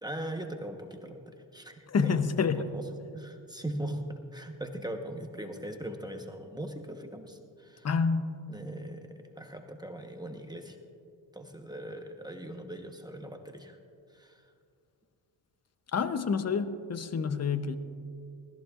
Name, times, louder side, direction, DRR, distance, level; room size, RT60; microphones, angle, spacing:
voice 1, 0.0-2.8 3.1-7.9 8.5-10.8 11.3-13.8 14.1-14.4, right 1 dB, 10° right, 4 dB, 1.2 m, -40 dB
voice 2, 1.9-2.7 7.8-8.4 15.9-17.8, left 5 dB, 35° left, 11 dB, 0.9 m, -28 dB
19.5 x 14.5 x 2.5 m, 2.5 s
supercardioid pair, 65°, 47 cm